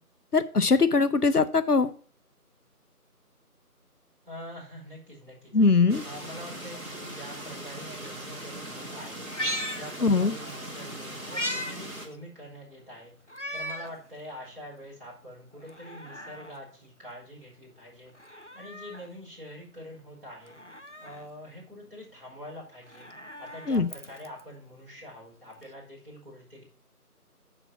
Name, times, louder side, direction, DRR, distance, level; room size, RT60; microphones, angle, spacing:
voice 1, 0.3-1.9 5.5-6.0 10.0-10.3 23.7-23.9, left 4 dB, 75° left, 12 dB, 0.8 m, -21 dB
voice 2, 4.3-5.5 6.0-9.3 9.7-13.1 13.5-20.6 21.0-23.1 23.4-26.6, equal, 35° right, -5 dB, 4.8 m, -45 dB
sound 1, 5.9-12.1, right 1 dB, 60° right, 2.2 m, -40 dB
Meow, 9.2-10.5 10.9-11.8 12.1-12.2 13.3-14.0 14.5-14.6 15.6-16.6 18.1-19.1 20.4-21.3 22.7-24.4 25.6-25.7, equal, 50° left, 0.5 m, -37 dB
7.2 x 6.9 x 5.7 m, 0.43 s
figure-of-eight pair, 180°, 46 cm